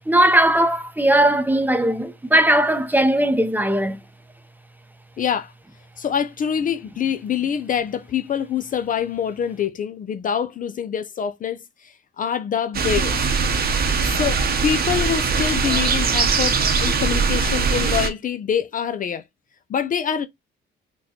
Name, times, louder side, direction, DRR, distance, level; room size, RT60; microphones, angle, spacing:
voice 1, 0.1-4.0, right 1 dB, 10° right, 0.5 m, -18 dB
voice 2, 5.2-5.5 6.0-13.4 13.7-19.2 19.7-20.3, left 8 dB, 45° left, 0.4 m, -25 dB
sound 1, 12.7-18.1, right 5 dB, 50° right, 0.7 m, -21 dB
4.0 x 2.2 x 2.7 m
cardioid pair, 90°, 20 cm